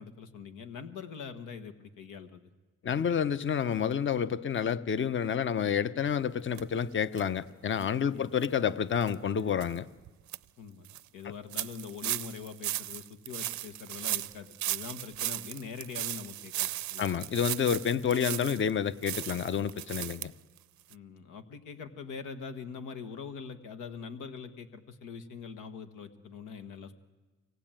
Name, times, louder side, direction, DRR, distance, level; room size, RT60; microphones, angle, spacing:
voice 1, 0.0-2.5 2.8-3.2 8.1-8.3 10.6-10.9 11.1-17.3 20.9-26.9, left 6 dB, 85° left, 1.5 m, -43 dB
voice 2, 2.8-9.9 17.0-20.3, left 7 dB, 40° left, 0.8 m, -29 dB
sound 1, 6.6-6.7 7.1-7.2 7.7-7.8 8.4-8.5 9.0-9.1 9.6-9.7 10.1-10.4 10.8-11.0 11.5-18.7 19.0-20.3 20.6-20.7 20.9-21.0, right 14 dB, 70° right, 0.6 m, -36 dB
24.0 x 17.5 x 8.9 m
cardioid pair, 90°, 30 cm